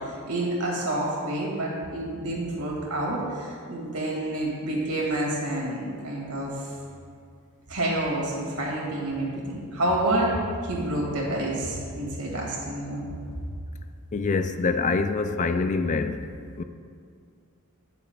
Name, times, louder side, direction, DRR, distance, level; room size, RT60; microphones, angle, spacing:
voice 1, 0.3-6.7 7.7-10.4 10.6-13.0, right 1 dB, 90° right, -3 dB, 2.5 m, -28 dB
voice 2, 14.1-16.3 16.6-16.7, left 4 dB, 35° left, 9 dB, 0.4 m, -25 dB
17.5 x 6.9 x 2.4 m, 2.2 s
head